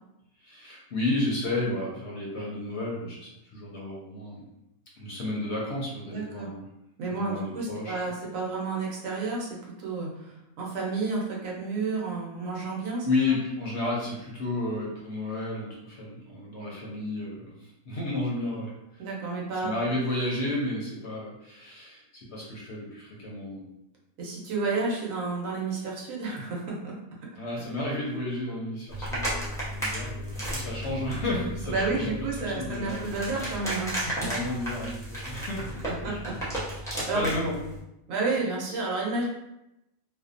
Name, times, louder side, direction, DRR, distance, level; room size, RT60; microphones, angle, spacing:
voice 1, 0.4-4.4 5.0-6.7 7.1-8.0 13.0-19.0 19.6-23.7 27.4-33.7 34.1-36.4 37.1-37.6, left 2 dB, 60° left, -3 dB, 0.8 m, -32 dB
voice 2, 6.1-6.5 7.0-13.1 19.0-19.7 24.2-27.0 31.7-34.0 35.8-37.2 38.1-39.3, right 3 dB, 75° right, -3 dB, 1.0 m, -31 dB
sound 1, 28.9-37.8, right 1 dB, 5° left, 0.4 m, -34 dB
2.6 x 2.1 x 2.4 m, 0.87 s
omnidirectional pair, 1.5 m